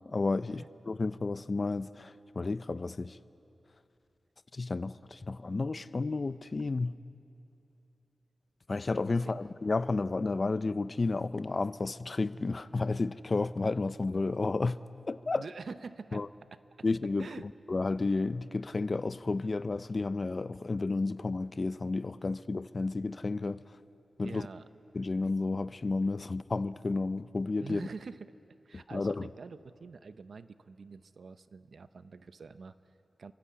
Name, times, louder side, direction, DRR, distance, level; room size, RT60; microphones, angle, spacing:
voice 1, 0.1-3.2 4.5-6.9 8.7-14.8 15.1-15.4 16.1-16.3 16.8-17.3 17.7-23.8 24.2-24.5 24.9-27.8 28.9-29.3, left 3 dB, 35° left, 0.5 m, -32 dB
voice 2, 15.3-16.2 17.2-17.5 24.2-24.7 27.6-28.3 28.6-33.3, right 4 dB, 65° right, 0.7 m, -46 dB
28.0 x 24.0 x 8.5 m
wide cardioid pair, 145°, 0 cm